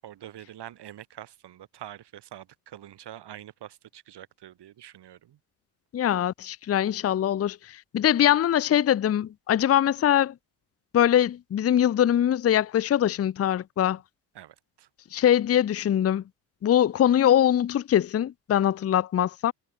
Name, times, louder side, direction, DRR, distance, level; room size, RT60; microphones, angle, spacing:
voice 1, 0.0-5.4 14.3-14.9, right 12 dB, 65° right, 7.9 m, -45 dB
voice 2, 5.9-10.3 10.9-14.0 15.1-16.2 16.6-19.5, left 10 dB, 35° left, 0.7 m, -22 dB
hypercardioid pair, 60°, 44 cm